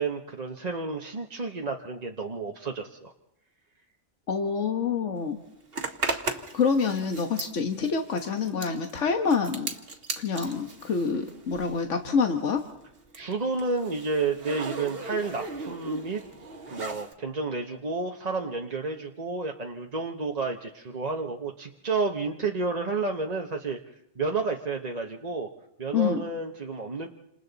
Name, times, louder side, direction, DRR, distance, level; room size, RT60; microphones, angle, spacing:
voice 1, 0.0-3.1 13.1-16.2 16.7-23.8 24.2-25.5 25.8-27.1, right 4 dB, 35° right, 2 dB, 1.1 m, -31 dB
voice 2, 4.3-5.4 6.1-6.2 6.5-9.7 10.2-12.6 25.9-26.2, left 5 dB, 85° left, 5 dB, 1.6 m, -27 dB
Zipper (clothing), 5.7-11.9 12.2-17.1, right 3 dB, 55° right, 1.8 m, -37 dB
29.0 x 27.0 x 4.1 m, 0.83 s
omnidirectional pair, 1.2 m